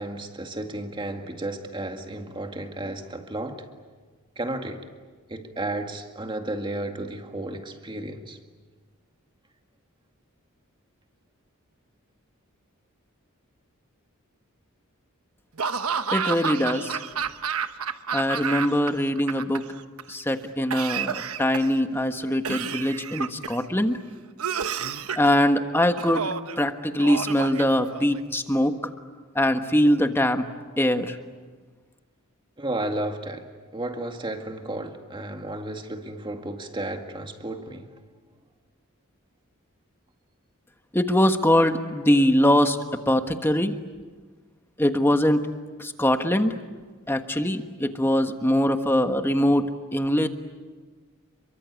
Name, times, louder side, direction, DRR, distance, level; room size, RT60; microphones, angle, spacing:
voice 1, 0.0-3.7 4.4-4.9 5.3-8.4 32.6-38.0, right 1 dB, 20° right, 2.1 m, -33 dB
Laughter / Cough, 15.6-18.9 19.2-20.0 20.7-21.8 22.4-23.6 24.4-25.3 26.0-26.6 27.0-28.2, right 6 dB, 80° right, 1.1 m, -30 dB
voice 2, 16.1-17.0 18.1-19.6 20.1-24.0 25.2-28.8 29.3-30.5 30.8-31.2 40.9-42.8 43.1-43.7 44.8-45.5 45.8-46.5 47.1-50.3, left 1 dB, 10° left, 1.4 m, -22 dB
29.0 x 23.5 x 8.4 m
head